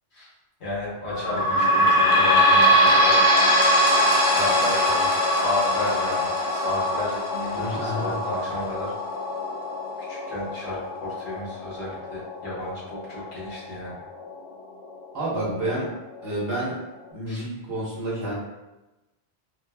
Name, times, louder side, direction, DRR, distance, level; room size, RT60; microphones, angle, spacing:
voice 1, 0.6-3.2 4.2-8.9 10.0-14.0 17.3-17.4, left 1 dB, 80° left, -7 dB, 1.5 m, -32 dB
sound 1, 1.1-14.3 14.9-15.0 15.2-15.3 16.1-16.2, equal, 35° left, 0.6 m, -22 dB
voice 2, 7.6-8.2 15.1-15.9 16.2-16.8 17.1-18.3, right 1 dB, 65° right, -7 dB, 1.2 m, -29 dB
3.8 x 2.2 x 2.2 m, 1.0 s
omnidirectional pair, 1.1 m